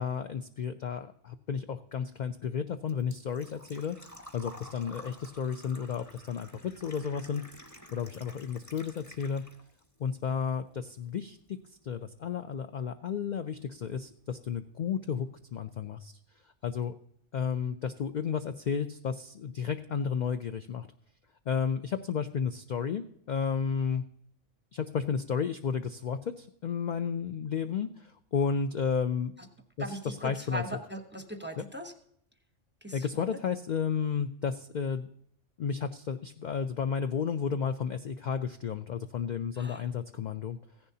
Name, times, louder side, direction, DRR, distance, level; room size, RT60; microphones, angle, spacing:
voice 1, 0.0-4.0 4.3-7.4 7.9-9.4 10.0-11.6 11.8-16.1 16.6-16.9 17.3-20.9 21.5-24.0 24.7-29.3 29.8-30.6 32.9-35.1 35.6-40.6, left 6 dB, 60° left, 8 dB, 0.4 m, -32 dB
Engine / Trickle dribble / Fill (with liquid), 1.9-9.9 10.2-11.2 11.5-11.6 13.5-13.6 13.8-14.1 14.5-14.6 14.8-14.9, left 1 dB, 15° left, 1.3 m, -51 dB
voice 2, 29.8-31.9 32.8-33.2 39.6-39.8, equal, 10° right, 5 dB, 0.8 m, -39 dB
15.5 x 10.5 x 2.7 m, 0.68 s
omnidirectional pair, 1.3 m